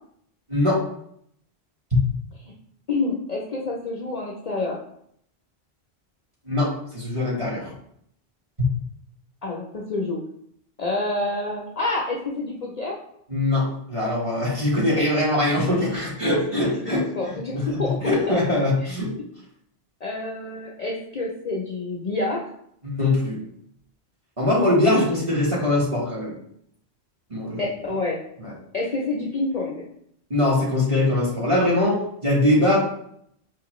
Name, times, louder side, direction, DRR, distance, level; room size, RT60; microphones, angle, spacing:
voice 1, 0.5-0.8 6.5-7.7 13.3-17.6 18.0-19.1 22.8-23.4 24.4-26.3 27.3-27.7 28.4-28.5 30.3-32.8, left 1 dB, 30° right, -6 dB, 1.3 m, -22 dB
voice 2, 2.9-4.8 9.4-10.2 10.8-13.0 15.0-15.1 15.5-15.9 16.6-18.0 18.8-18.9 20.0-22.4 27.6-28.2 28.7-29.8, left 2 dB, 50° left, -2 dB, 0.5 m, -28 dB
4.7 x 2.5 x 3.0 m, 0.70 s
omnidirectional pair, 1.1 m